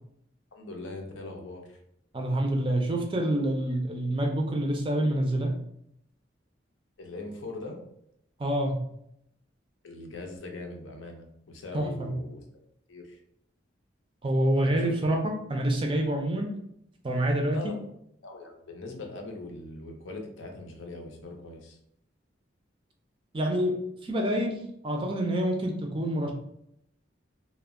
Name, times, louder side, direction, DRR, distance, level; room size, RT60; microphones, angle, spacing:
voice 1, 0.5-1.8 7.0-7.8 9.8-12.4 12.9-13.2 14.8-14.9 17.5-17.8 18.2-21.8, left 2 dB, 85° left, 3 dB, 0.6 m, -41 dB
voice 2, 2.1-5.5 8.4-8.8 11.7-12.1 14.2-16.5 17.0-17.6 23.3-23.7 24.0-24.6 24.8-26.3, right 1 dB, 25° right, 2 dB, 0.4 m, -27 dB
2.2 x 2.0 x 3.5 m, 0.75 s
head